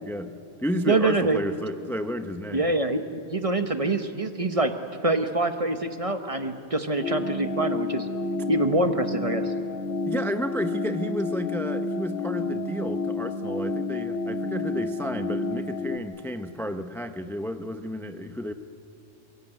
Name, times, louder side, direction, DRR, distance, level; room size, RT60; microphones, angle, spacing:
voice 1, 0.0-0.3 0.6-2.7 10.1-18.5, equal, ahead, 8 dB, 0.7 m, -32 dB
voice 2, 0.9-1.4 2.5-4.7 5.0-8.1 8.5-9.5, right 2 dB, 30° right, 8 dB, 1.1 m, -25 dB
sound 1, 7.0-16.0, left 3 dB, 75° left, 1.8 m, -30 dB
28.5 x 17.0 x 9.1 m, 3.0 s
omnidirectional pair, 1.2 m